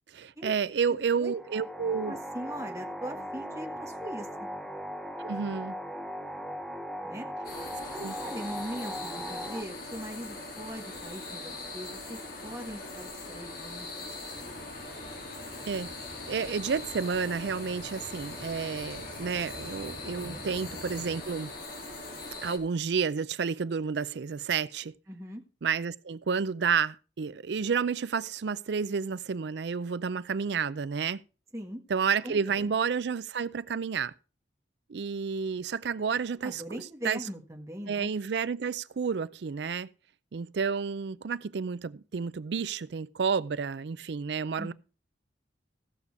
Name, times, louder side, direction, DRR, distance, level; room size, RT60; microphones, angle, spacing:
voice 1, 0.1-2.2 5.2-5.7 8.0-8.1 15.7-15.9 16.2-21.5 22.4-24.9 25.6-31.2 31.9-34.1 34.9-37.2 37.9-39.9 40.3-44.7, right 6 dB, 70° right, 0.4 m, -30 dB
voice 2, 0.9-1.3 2.0-4.5 7.0-7.3 7.9-14.1 20.1-20.4 25.1-25.4 31.5-31.8 32.2-32.7 36.4-38.1 44.6-44.7, equal, 15° right, 1.6 m, -41 dB
sound 1, 1.3-9.6, equal, ahead, 0.9 m, -38 dB
sound 2, 7.4-22.6, left 2 dB, 50° left, 2.7 m, -41 dB
sound 3, 14.3-21.2, equal, 90° left, 7.1 m, -48 dB
15.5 x 6.7 x 4.8 m
head